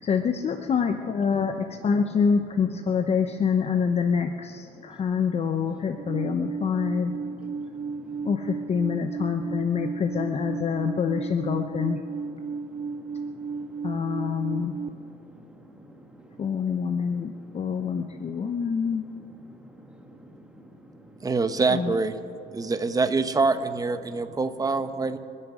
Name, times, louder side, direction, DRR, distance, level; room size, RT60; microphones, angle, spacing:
voice 1, 0.0-7.1 8.2-12.0 13.8-14.8 16.4-19.0 21.7-21.9, left 6 dB, 40° left, 7 dB, 0.8 m, -26 dB
Alarm, 6.0-14.9, right 5 dB, 35° right, 0.6 m, -34 dB
voice 2, 7.5-8.3 12.6-13.9 14.3-16.5 17.5-18.2 18.5-18.7 19.5-21.2 22.5-22.7, equal, 5° right, 3 dB, 2.0 m, -50 dB
voice 3, 21.2-22.2 22.5-25.2, right 3 dB, 20° right, 11 dB, 0.9 m, -25 dB
27.5 x 9.9 x 5.0 m, 2.6 s
cardioid pair, 110°, 17 cm